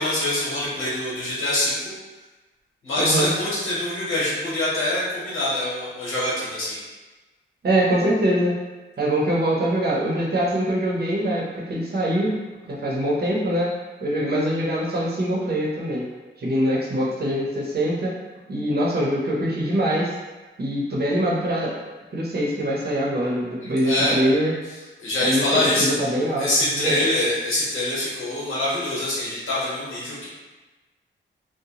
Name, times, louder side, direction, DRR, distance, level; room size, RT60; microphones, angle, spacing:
voice 1, 0.0-1.9 2.8-6.8 23.6-24.2 25.0-25.9 26.4-30.3, left 1 dB, 85° left, -8 dB, 1.0 m, -24 dB
voice 2, 3.0-3.3 7.6-8.6 9.0-12.3 12.7-13.7 14.0-16.0 16.4-18.1 18.5-20.1 20.6-21.7 22.1-24.5 25.2-25.5 25.8-26.5 26.7-27.1, right 1 dB, 50° right, -4 dB, 0.7 m, -23 dB
2.9 x 2.1 x 2.8 m, 1.2 s
wide cardioid pair, 115°, 20 cm